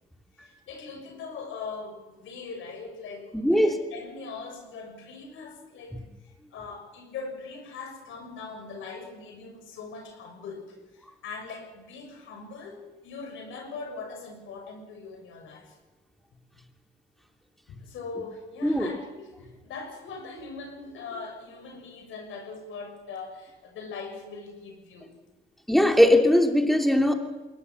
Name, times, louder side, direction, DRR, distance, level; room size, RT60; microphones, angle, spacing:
voice 1, 0.3-15.8 16.3-16.7 17.7-25.1, left 4 dB, 80° left, 3 dB, 6.4 m, -41 dB
voice 2, 3.3-3.7 18.6-18.9 25.7-27.1, left 1 dB, ahead, 4 dB, 3.0 m, -20 dB
22.0 x 18.0 x 7.2 m, 1.2 s
cardioid pair, 90°, 20 cm